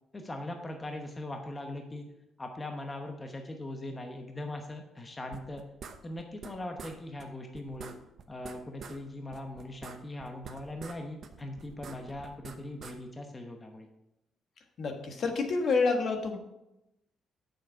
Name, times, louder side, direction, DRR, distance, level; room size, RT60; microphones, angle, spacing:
voice 1, 0.1-2.1 2.4-5.6 6.0-7.9 8.3-13.9, left 1 dB, 25° left, 3 dB, 1.0 m, -40 dB
sound 1, 5.3-6.5 6.8-6.9 7.2-7.3 7.5-9.0 9.3-11.0 11.2-12.9, right 6 dB, 60° right, 0.8 m, -46 dB
voice 2, 14.8-16.4, left 4 dB, 60° left, 4 dB, 1.4 m, -28 dB
7.4 x 6.5 x 4.7 m, 0.89 s
cardioid pair, 90°, 0 cm